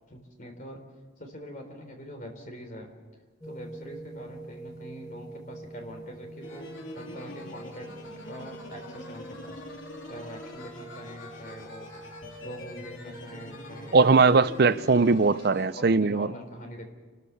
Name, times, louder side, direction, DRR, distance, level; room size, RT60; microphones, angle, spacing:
voice 1, 0.1-0.8 1.2-2.9 3.4-9.6 10.0-11.9 12.3-14.1 14.7-14.8 15.2-15.3 15.6-16.8, equal, 40° left, 3.7 m, -44 dB
sound 1, 3.4-14.8, right 2 dB, 20° left, 2.3 m, -46 dB
sound 2, 6.4-15.7, left 2 dB, 80° left, 3.1 m, -44 dB
voice 2, 13.9-16.3, right 4 dB, 50° right, 0.5 m, -20 dB
28.5 x 13.5 x 7.0 m
head